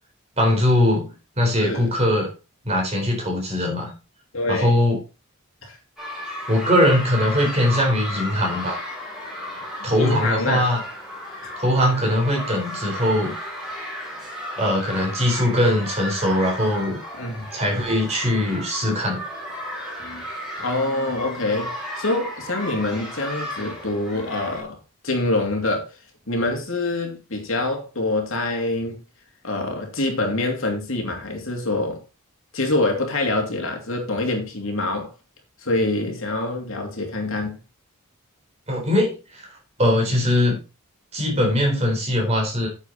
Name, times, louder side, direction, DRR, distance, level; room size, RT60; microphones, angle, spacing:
voice 1, 0.4-2.3 2.6-3.9 4.5-5.0 6.5-8.8 9.8-10.8 11.6-13.3 14.6-17.0 17.5-19.2 38.7-39.4 39.8-40.6 41.1-42.7, left 1 dB, 30° right, 4.0 m, -21 dB
voice 2, 1.6-1.9 4.3-4.7 5.6-5.8 9.6-9.7 9.9-10.7 11.4-11.5 17.2-17.5 20.0-20.2 20.6-24.8 25.0-25.9 26.3-29.0 29.4-32.0 32.5-35.1 35.6-37.6, left 2 dB, 65° left, 2.8 m, -25 dB
sound 1, 6.0-24.6, left 1 dB, 5° right, 4.1 m, -34 dB
9.0 x 7.4 x 4.1 m
head